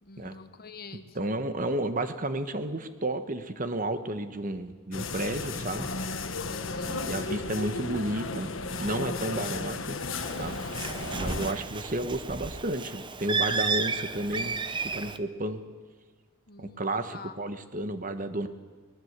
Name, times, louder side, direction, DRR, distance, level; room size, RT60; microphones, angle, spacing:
voice 1, 0.0-1.4 6.5-7.0 16.5-17.4, left 4 dB, 45° left, 10 dB, 1.3 m, -47 dB
voice 2, 1.1-5.9 6.8-8.5 8.8-10.0 10.4-10.6 11.2-15.6 16.6-18.5, right 1 dB, 40° right, 9 dB, 1.3 m, -32 dB
sound 1, 4.9-11.5, left 3 dB, 65° left, 1.4 m, -34 dB
Bird, 10.2-15.2, right 4 dB, 20° right, 0.8 m, -32 dB
23.5 x 20.0 x 8.2 m, 1.5 s
head